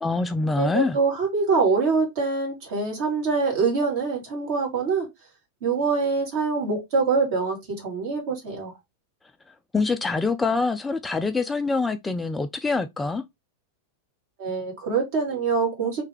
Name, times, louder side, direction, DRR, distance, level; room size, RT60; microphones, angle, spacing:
voice 1, 0.0-1.0 9.7-13.2, left 3 dB, 10° left, 0.4 m, -25 dB
voice 2, 0.6-5.1 5.6-8.7 14.4-16.0, right 4 dB, 50° right, 2.1 m, -24 dB
3.2 x 3.2 x 3.4 m
figure-of-eight pair, 90°, 0 cm